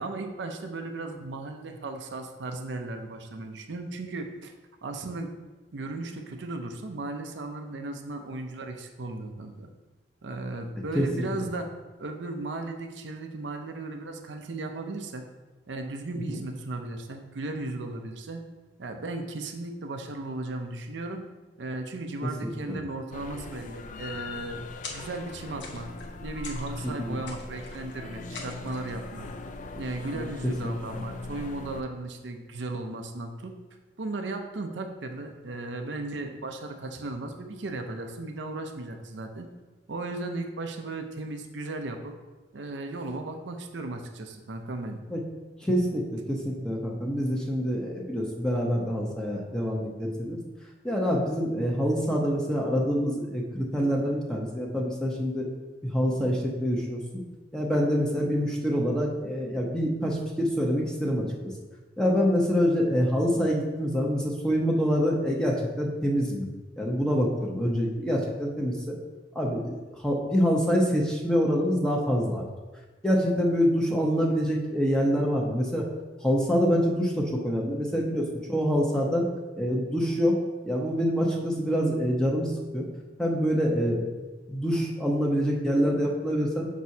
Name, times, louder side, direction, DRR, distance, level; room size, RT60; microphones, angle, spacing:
voice 1, 0.0-4.5 4.8-5.3 5.7-9.7 10.2-11.7 12.0-15.3 15.7-18.4 18.8-21.2 21.6-24.6 24.9-25.9 26.2-29.3 29.8-33.5 34.0-39.5 39.9-42.1 42.5-45.0, right 2 dB, 75° right, 5 dB, 0.6 m, -36 dB
voice 2, 10.9-11.3 22.4-22.8 26.8-27.2 30.1-30.7 45.1-45.2 45.6-50.4 50.8-55.5 55.8-57.0 57.5-61.5 62.0-66.5 66.8-68.9 69.3-72.4 73.0-75.8 76.2-79.2 79.6-80.3 80.6-82.9 83.2-86.7, equal, 5° left, -2 dB, 0.8 m, -26 dB
sound 1, 23.1-31.8, left 3 dB, 45° left, 0.4 m, -40 dB
sound 2, 24.8-25.3 25.6-26.1 26.4-26.9 27.3-27.9 28.3-29.0, left 3 dB, 80° left, 1.1 m, -43 dB
7.3 x 6.1 x 2.8 m, 1.2 s
head